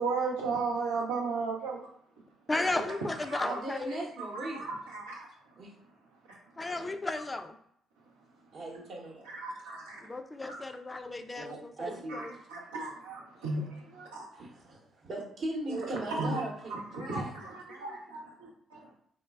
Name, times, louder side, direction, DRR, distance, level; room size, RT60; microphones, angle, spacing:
voice 1, 0.0-1.9 3.3-3.6 4.2-5.3 6.3-6.4 9.4-10.0 10.5-10.6 11.8-14.3 15.7-18.9, right 3 dB, 85° right, -2 dB, 0.6 m, -35 dB
voice 2, 2.5-4.1 6.6-7.6 10.0-12.3, left 2 dB, 20° left, 7 dB, 0.3 m, -34 dB
voice 3, 3.4-4.7 5.6-5.7 8.5-9.3 11.4-12.2 13.4-13.5 14.3-17.3, right 2 dB, 55° right, -2 dB, 0.9 m, -39 dB
3.1 x 2.1 x 2.3 m, 0.69 s
hypercardioid pair, 50°, 0 cm